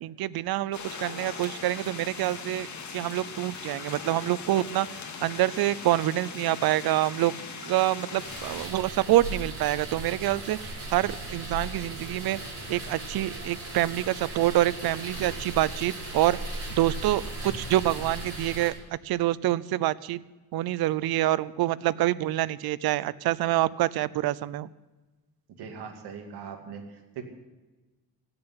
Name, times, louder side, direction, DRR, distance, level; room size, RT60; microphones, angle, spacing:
voice 1, 0.0-4.9 5.2-7.3 7.6-12.4 12.7-16.4 16.7-20.2 20.5-24.7, right 15 dB, 70° right, 20 dB, 0.6 m, -26 dB
sound 1, 0.7-8.7, left 5 dB, 45° left, 2.1 m, -40 dB
sound 2, 8.2-18.7, right 1 dB, 40° right, 6.8 m, -37 dB
voice 2, 25.6-27.2, right 6 dB, 85° right, 5 dB, 2.4 m, -40 dB
16.0 x 7.0 x 9.9 m, 1.2 s
cardioid pair, 120°, 39 cm